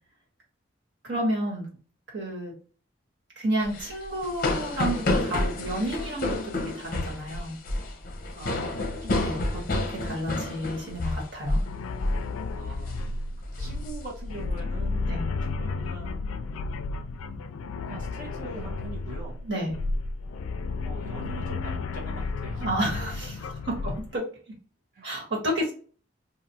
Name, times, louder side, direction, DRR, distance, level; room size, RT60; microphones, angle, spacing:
voice 1, 1.0-1.7 2.1-2.5 3.4-7.6 9.0-11.6 15.1-15.2 19.4-19.7 22.6-24.2 25.0-25.7, right 1 dB, 60° right, -3 dB, 1.5 m, -31 dB
sound 1, 3.6-11.7 12.0-12.3 12.6-13.0 13.4-14.5, left 2 dB, 45° left, 0.6 m, -29 dB
voice 2, 8.4-9.3 12.5-13.0 13.4-16.2 17.1-17.5 17.8-19.4 20.8-22.7 23.8-23.9 24.9-25.1, right 2 dB, 40° right, -2 dB, 0.9 m, -42 dB
sound 2, 11.7-24.2, left 3 dB, 90° left, 0.3 m, -33 dB
3.1 x 2.4 x 2.7 m, 0.41 s
head